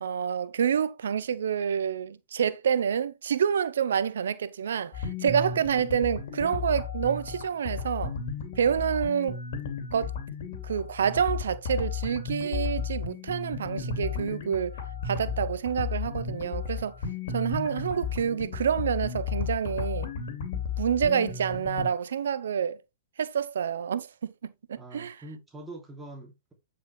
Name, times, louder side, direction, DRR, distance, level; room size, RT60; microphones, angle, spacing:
voice 1, 0.0-8.1 8.6-9.4 9.9-10.1 10.6-14.8 15.0-16.9 17.3-20.1 20.8-22.8 23.2-25.2, right 7 dB, 75° right, 0.8 m, -28 dB
sound 1, 4.9-21.9, left 6 dB, 65° left, 2.8 m, -34 dB
voice 2, 24.8-26.5, right 2 dB, 10° right, 2.9 m, -44 dB
9.7 x 5.3 x 3.3 m
hypercardioid pair, 115°, 0 cm